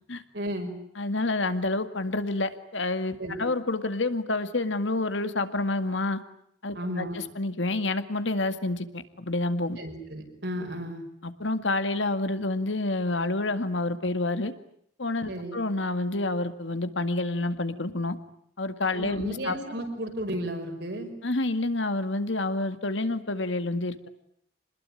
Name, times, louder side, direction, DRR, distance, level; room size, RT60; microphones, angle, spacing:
voice 1, 0.3-0.7 3.2-3.4 6.7-7.1 9.8-11.0 15.3-15.6 18.9-21.1, equal, 65° right, 4 dB, 5.6 m, -33 dB
voice 2, 1.0-6.2 6.6-9.8 11.2-14.5 15.0-18.2 18.6-19.5 21.2-24.1, left 2 dB, 80° left, 9 dB, 2.0 m, -28 dB
27.5 x 20.5 x 9.9 m, 0.70 s
head